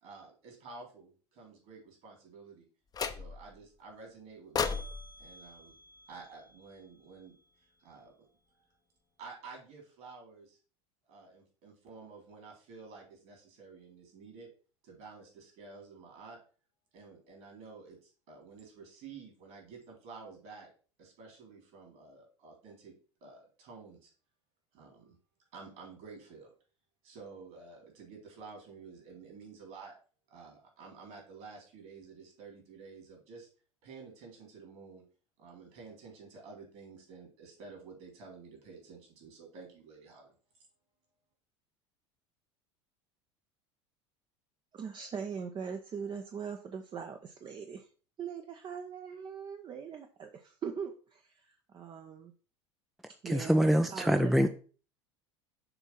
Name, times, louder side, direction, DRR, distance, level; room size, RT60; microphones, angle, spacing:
voice 1, 0.0-2.7 3.1-4.8 5.2-5.8 6.1-7.3 7.6-8.7 9.2-10.6 11.1-14.5 14.8-16.4 16.9-20.7 21.0-22.9 23.2-24.1 24.7-25.2 25.5-26.5 27.0-29.9 30.3-33.5 33.8-35.0 35.4-40.3, right 4 dB, 55° right, 3.6 m, -51 dB
sound 1, 2.9-3.6 4.5-6.8, left 5 dB, 25° left, 0.8 m, -37 dB
voice 2, 44.7-47.9 48.2-52.3 53.2-54.3, right 6 dB, 30° right, 0.8 m, -41 dB
voice 3, 53.2-54.5, equal, ahead, 0.5 m, -25 dB
6.9 x 3.7 x 5.6 m
figure-of-eight pair, 75°, 15 cm